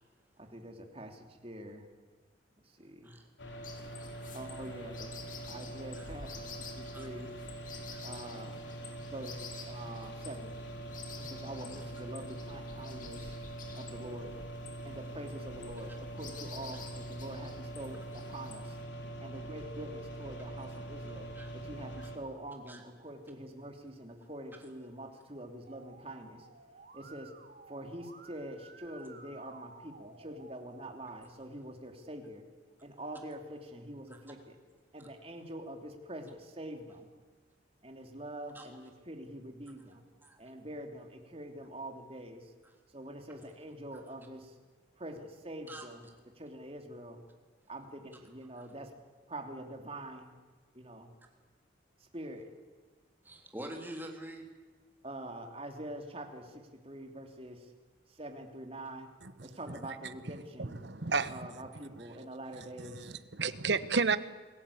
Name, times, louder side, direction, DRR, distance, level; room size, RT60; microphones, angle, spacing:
voice 1, 0.4-1.9 2.6-3.1 4.3-5.1 5.5-7.3 8.0-8.6 9.0-10.5 11.2-13.4 13.7-14.3 14.8-18.0 18.3-18.8 19.2-21.3 21.6-26.5 26.9-27.3 27.7-32.4 32.8-34.6 34.9-37.1 37.8-40.0 40.4-42.5 42.9-44.6 45.0-46.1 46.4-47.2 47.7-48.9 49.3-50.4 50.7-51.1 52.0-52.5 55.0-57.7 58.1-59.1 59.4-60.8 61.3-63.2, right 1 dB, 30° right, 4 dB, 3.1 m, -45 dB
sound 1, 3.4-22.2, right 1 dB, 80° left, 3.9 m, -43 dB
sound 2, 3.6-18.8, left 6 dB, 45° left, 3.0 m, -51 dB
Musical instrument, 25.7-31.2, right 4 dB, 50° right, 2.0 m, -55 dB
voice 2, 53.2-54.4, right 1 dB, 10° right, 2 dB, 3.4 m, -45 dB
voice 3, 60.6-61.3 62.9-64.2, right 4 dB, 70° right, 13 dB, 1.2 m, -31 dB
27.5 x 18.0 x 8.6 m, 1.4 s
head